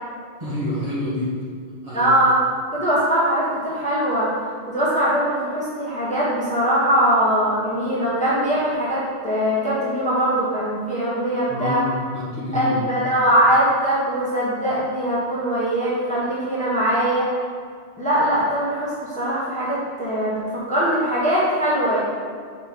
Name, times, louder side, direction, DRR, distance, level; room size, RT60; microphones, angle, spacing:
voice 1, 0.4-1.4 1.8-2.1 11.5-12.8, left 2 dB, 30° right, -8 dB, 1.7 m, -27 dB
voice 2, 1.9-2.3 2.7-11.8 12.5-17.3 18.0-22.0, right 1 dB, 5° left, -8 dB, 1.3 m, -21 dB
5.1 x 5.0 x 5.2 m, 2.1 s
omnidirectional pair, 1.2 m